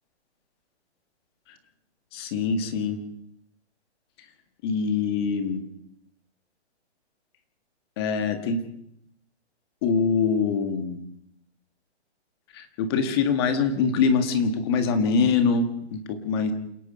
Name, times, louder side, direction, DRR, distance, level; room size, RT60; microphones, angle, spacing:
voice 1, 2.1-3.0 4.6-5.6 8.0-8.6 9.8-11.0 12.5-16.5, left 5 dB, 20° left, 7 dB, 1.9 m, -24 dB
28.0 x 18.0 x 5.6 m, 0.74 s
hypercardioid pair, 170°, 34 cm